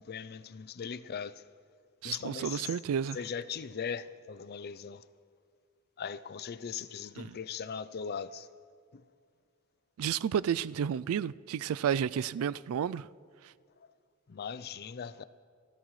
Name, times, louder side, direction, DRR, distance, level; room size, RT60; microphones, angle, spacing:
voice 1, 0.0-1.4 2.0-2.8 3.1-5.0 6.0-8.5 8.9-9.0 14.3-15.2, left 7 dB, 45° left, 0.5 m, -39 dB
voice 2, 2.0-3.2 7.2-7.4 10.0-13.1, right 8 dB, 70° right, 0.3 m, -31 dB
28.5 x 14.5 x 3.2 m
head